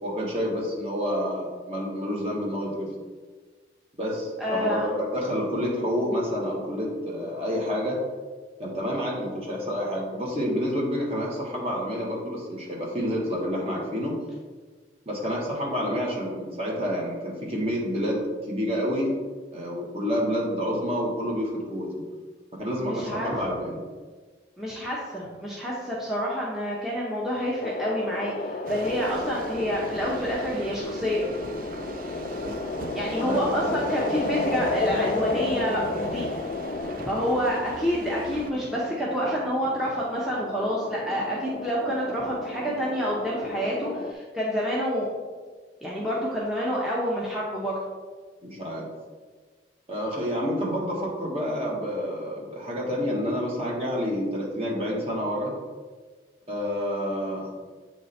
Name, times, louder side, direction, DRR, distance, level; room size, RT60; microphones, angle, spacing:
voice 1, 0.0-2.9 4.0-8.0 8.6-14.2 15.0-19.1 19.5-21.9 22.5-23.8 33.1-33.5 48.4-48.9 49.9-55.5 56.5-57.5, equal, 35° right, -3 dB, 1.4 m, -28 dB
voice 2, 4.4-5.0 22.8-23.3 24.6-31.3 32.9-35.8 36.1-36.3 37.0-45.1 45.8-47.8, equal, ahead, -6 dB, 0.7 m, -28 dB
sound 1, 27.6-44.1, left 3 dB, 40° left, 0.3 m, -33 dB
sound 2, 28.7-38.5, right 3 dB, 50° right, 0.4 m, -38 dB
8.1 x 3.2 x 4.2 m, 1.4 s
head